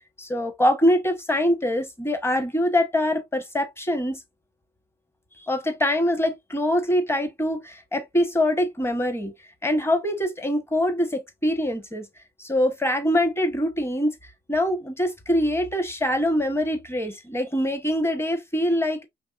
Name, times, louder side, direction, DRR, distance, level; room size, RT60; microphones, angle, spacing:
voice 1, 0.2-4.2 5.4-9.3 9.6-12.1 12.4-14.2 14.5-19.0, left 1 dB, 10° left, 1.2 m, -24 dB
5.3 x 3.2 x 2.5 m
cardioid pair, 90°, 20 cm